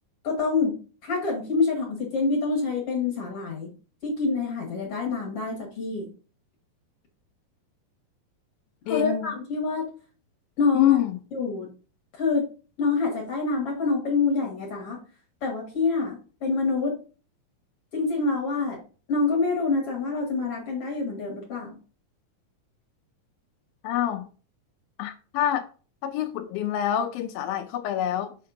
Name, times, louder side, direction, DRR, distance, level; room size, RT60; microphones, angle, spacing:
voice 1, 0.2-0.8 1.0-3.7 4.0-6.1 8.9-9.9 10.6-11.0 11.3-11.7 12.2-12.5 12.8-15.0 15.4-17.0 17.9-18.8 19.1-21.8, left 4 dB, 50° left, 2.2 m, -26 dB
voice 2, 8.9-9.3 10.8-11.2 23.8-24.3 25.0-25.7 26.0-28.4, left 11 dB, 80° left, 2.3 m, -26 dB
6.8 x 6.5 x 2.6 m
omnidirectional pair, 4.2 m